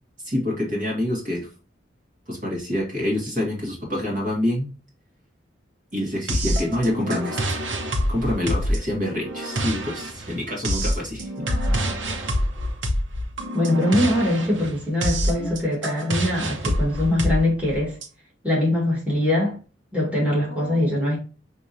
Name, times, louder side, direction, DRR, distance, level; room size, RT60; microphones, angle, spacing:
voice 1, 0.2-1.5 2.3-4.7 5.9-7.6 8.1-11.5 15.4-15.5 20.5-21.1, left 1 dB, 45° right, 1.8 m, -27 dB
sound 1, 6.3-18.1, equal, 85° right, 1.0 m, -26 dB
voice 2, 13.5-18.0 18.4-19.6 19.9-21.2, left 1 dB, 5° right, 1.8 m, -22 dB
5.8 x 2.9 x 2.6 m
head